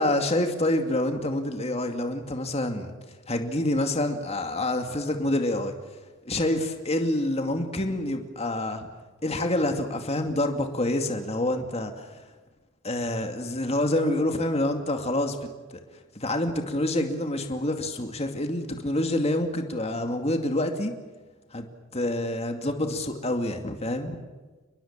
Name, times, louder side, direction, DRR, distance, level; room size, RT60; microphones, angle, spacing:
voice 1, 0.0-2.9 3.3-5.7 6.2-8.9 9.2-12.2 12.8-15.4 16.1-20.9 21.5-21.7 21.9-24.2, left 1 dB, 30° left, 5 dB, 2.4 m, -27 dB
29.5 x 21.5 x 7.4 m, 1.3 s
head